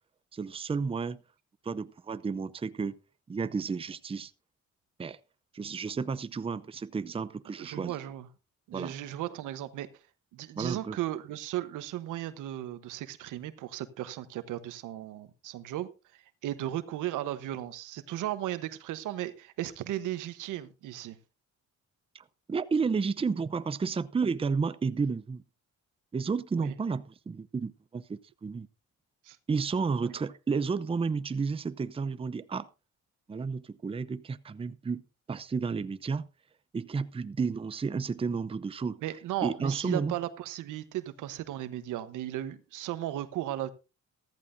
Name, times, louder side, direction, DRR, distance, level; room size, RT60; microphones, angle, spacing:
voice 1, 0.3-1.2 1.6-3.0 3.3-4.3 5.0-5.2 5.5-8.0 8.7-8.9 10.6-11.0 22.1-25.4 26.1-28.7 29.5-32.7 33.3-35.0 35.3-36.3 36.7-39.0 39.4-40.1, right 5 dB, 20° right, 0.6 m, -32 dB
voice 2, 7.6-8.3 8.7-9.9 10.3-15.9 16.4-21.2 26.6-26.7 29.2-29.4 39.0-43.7, right 13 dB, 90° right, 1.1 m, -36 dB
14.5 x 13.5 x 2.7 m
cardioid pair, 90°, 30 cm